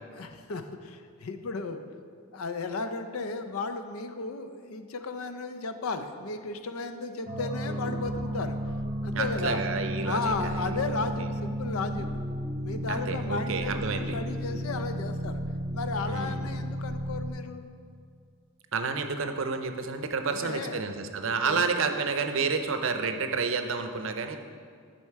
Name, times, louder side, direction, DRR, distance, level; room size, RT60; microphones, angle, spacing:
voice 1, 0.1-1.8 2.3-8.6 9.0-9.6 10.0-12.1 12.6-15.4 15.7-17.6 20.3-20.8 21.2-21.7, left 3 dB, 80° left, 8 dB, 0.5 m, -34 dB
sound 1, 7.3-17.3, equal, 25° right, 1.0 m, -33 dB
voice 2, 9.1-11.0 12.9-14.2 16.1-16.5 18.7-24.4, right 4 dB, 65° right, 7 dB, 0.6 m, -30 dB
10.5 x 4.2 x 4.6 m, 2.2 s
head